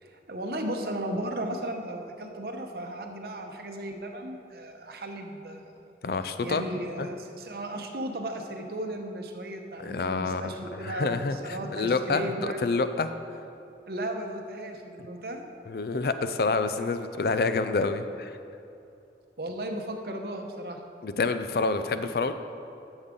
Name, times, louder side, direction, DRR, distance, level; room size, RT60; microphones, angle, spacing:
voice 1, 0.0-5.7 6.4-12.6 13.9-15.4 19.4-20.8, right 1 dB, 60° right, 4 dB, 0.9 m, -35 dB
voice 2, 6.0-6.6 7.0-7.1 9.8-10.5 10.8-13.1 15.7-18.3 21.0-22.3, left 3 dB, 60° left, 10 dB, 0.4 m, -28 dB
12.0 x 7.1 x 3.8 m, 2.7 s
head